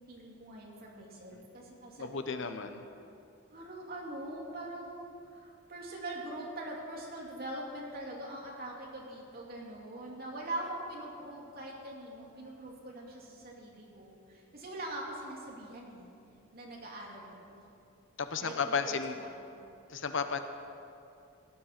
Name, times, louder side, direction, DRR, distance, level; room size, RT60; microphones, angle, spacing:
voice 1, 0.1-2.6 3.5-16.1 16.5-17.6 18.4-19.3 19.5-19.7, right 1 dB, 45° right, -2 dB, 2.7 m, -43 dB
voice 2, 2.0-2.8 18.2-19.2 19.9-20.4, left 5 dB, 60° left, 8 dB, 0.8 m, -33 dB
17.5 x 10.5 x 5.9 m, 2.6 s
head